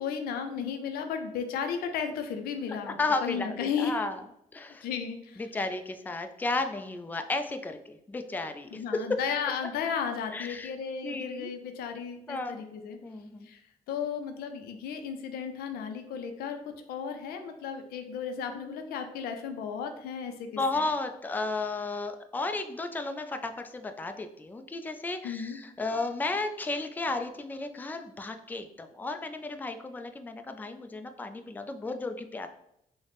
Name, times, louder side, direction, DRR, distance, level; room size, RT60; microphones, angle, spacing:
voice 1, 0.0-4.0 4.8-5.4 8.7-13.0 13.4-13.6 13.9-20.8 25.2-25.6, left 7 dB, 85° left, 7 dB, 0.4 m, -34 dB
voice 2, 2.9-4.2 4.5-4.9 5.4-9.2 10.3-10.7 11.0-11.5 12.3-12.6 13.0-13.5 18.4-18.8 20.6-32.5, left 3 dB, 10° left, 7 dB, 0.3 m, -33 dB
3.9 x 2.1 x 3.3 m, 0.79 s
supercardioid pair, 65°, 15 cm